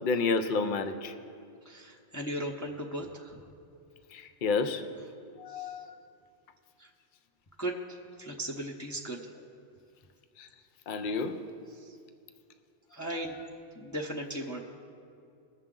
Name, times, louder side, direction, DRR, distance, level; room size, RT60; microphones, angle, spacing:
voice 1, 0.0-1.1 4.1-4.8 5.4-5.9 10.4-10.5 10.9-11.4, left 4 dB, 55° left, 8 dB, 0.7 m, -30 dB
voice 2, 1.6-3.4 5.5-5.8 6.8-6.9 7.6-9.2 11.7-12.0 12.9-13.4 13.8-14.6, right 1 dB, 20° left, -1 dB, 0.7 m, -37 dB
21.0 x 7.1 x 3.8 m, 2.4 s
omnidirectional pair, 1.2 m